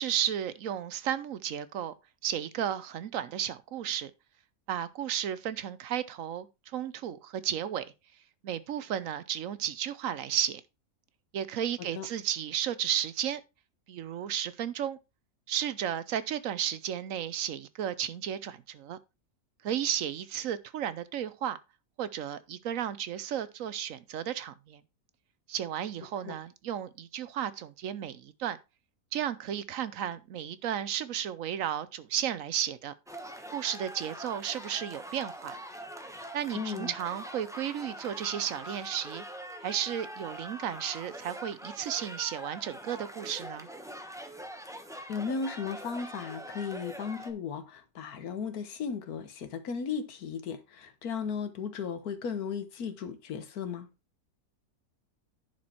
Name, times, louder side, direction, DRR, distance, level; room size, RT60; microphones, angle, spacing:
voice 1, 0.0-1.9 2.2-4.1 4.7-6.5 6.7-7.8 8.4-10.6 11.3-13.4 13.9-15.0 15.5-19.0 19.6-21.6 22.0-24.8 25.5-28.6 29.1-32.9 33.5-35.6 36.3-39.2 39.6-43.7, right 10 dB, 65° right, 1.0 m, -33 dB
sound 1, 33.1-47.3, equal, 5° right, 0.7 m, -43 dB
voice 2, 36.5-36.9 45.1-53.9, left 6 dB, 85° left, 1.5 m, -35 dB
10.5 x 4.6 x 4.3 m
omnidirectional pair, 1.6 m